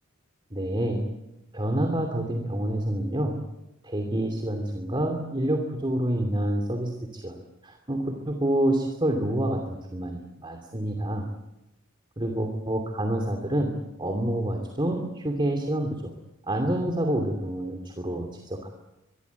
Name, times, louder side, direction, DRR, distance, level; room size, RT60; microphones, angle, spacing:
voice 1, 0.5-1.0 1.5-3.4 3.8-7.4 7.6-11.3 12.2-16.1 16.5-18.7, right 1 dB, 25° right, 4 dB, 2.8 m, -28 dB
24.5 x 23.0 x 8.3 m, 0.95 s
head